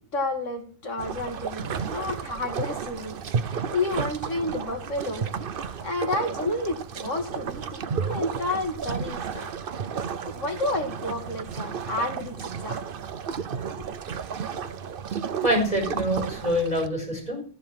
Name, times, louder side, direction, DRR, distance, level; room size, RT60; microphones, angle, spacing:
voice 1, 0.1-5.3 5.8-9.5 10.2-12.8 13.6-13.8, left 2 dB, 65° left, 3 dB, 2.4 m, -31 dB
sound 1, 1.0-16.9, right 6 dB, 50° right, 0.8 m, -33 dB
voice 2, 15.4-17.4, equal, 30° left, 0 dB, 4.9 m, -25 dB
14.0 x 5.1 x 7.5 m, 0.43 s
omnidirectional pair, 1.4 m